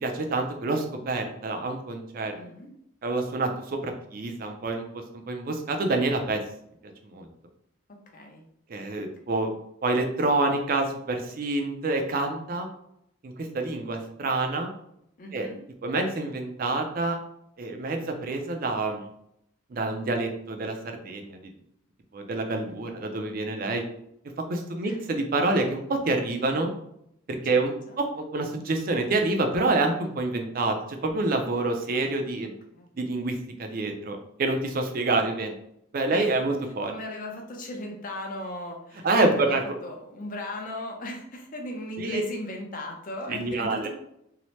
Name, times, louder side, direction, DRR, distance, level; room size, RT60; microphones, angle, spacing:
voice 1, 0.0-2.3 3.0-6.4 7.0-7.3 8.7-9.5 9.8-12.7 13.2-14.7 15.3-15.5 15.8-17.2 17.6-19.1 19.7-21.4 22.1-23.8 24.5-26.7 27.4-32.5 33.0-35.5 35.9-36.9 39.0-39.6 42.0-42.2 43.3-43.9, right 2 dB, 45° right, 4 dB, 0.4 m, -27 dB
voice 2, 2.3-2.7 7.9-8.4 15.2-15.6 22.7-23.0 24.8-25.0 27.5-28.0 32.7-32.9 36.1-36.3 36.9-39.1 39.4-43.9, left 1 dB, 40° left, 2 dB, 0.5 m, -37 dB
2.7 x 2.0 x 3.0 m, 0.74 s
head